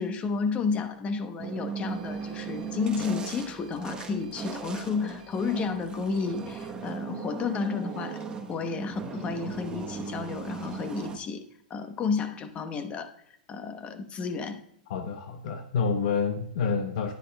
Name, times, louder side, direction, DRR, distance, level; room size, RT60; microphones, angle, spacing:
voice 1, 0.0-8.2 8.5-13.1 13.5-14.6, left 5 dB, 25° left, 9 dB, 0.9 m, -31 dB
sound 1, 1.4-11.2, right 5 dB, 15° right, 1.0 m, -38 dB
Printer, 1.8-6.8, right 7 dB, 65° right, 1.1 m, -51 dB
voice 2, 14.9-17.1, left 5 dB, 60° left, 7 dB, 0.8 m, -28 dB
10.5 x 10.0 x 2.3 m, 0.74 s
hypercardioid pair, 120°, 5 cm